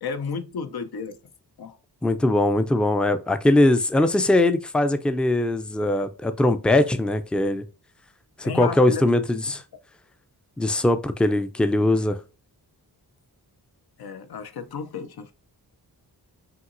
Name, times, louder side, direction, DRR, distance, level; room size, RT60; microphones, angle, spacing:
voice 1, 0.0-1.2 1.6-1.8 8.4-9.1 14.0-15.3, left 5 dB, 65° left, 0.6 m, -33 dB
voice 2, 2.0-7.6 8.4-9.6 10.6-12.2, left 1 dB, 5° left, 0.4 m, -21 dB
5.7 x 2.9 x 2.5 m
wide cardioid pair, 90°, 40 cm